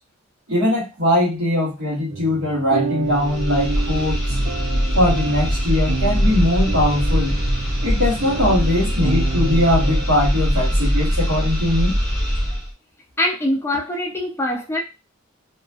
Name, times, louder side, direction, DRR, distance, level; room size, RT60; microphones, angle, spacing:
voice 1, 0.5-4.3 4.9-7.4 7.8-12.0, left 1 dB, 65° right, -5 dB, 1.1 m, -21 dB
sound 1, 2.1-10.1, right 4 dB, 85° right, 0.6 m, -30 dB
sound 2, 3.0-12.7, equal, 25° right, 1.0 m, -22 dB
voice 2, 13.2-14.8, left 1 dB, 10° left, 0 dB, 0.5 m, -23 dB
2.4 x 2.2 x 2.4 m, 0.26 s
head